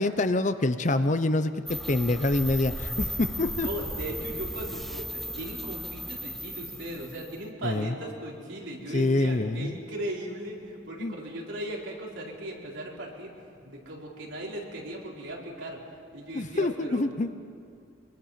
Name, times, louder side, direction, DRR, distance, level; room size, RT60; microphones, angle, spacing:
voice 1, 0.0-3.7 7.6-7.9 8.9-9.8 11.0-11.2 16.3-17.3, left 2 dB, 35° left, 11 dB, 0.7 m, -26 dB
sound 1, 1.7-7.4, equal, ahead, 0.5 m, -36 dB
voice 2, 3.6-15.8 16.1-17.0, right 1 dB, 70° right, -3 dB, 4.4 m, -37 dB
24.0 x 24.0 x 5.9 m, 2.4 s
head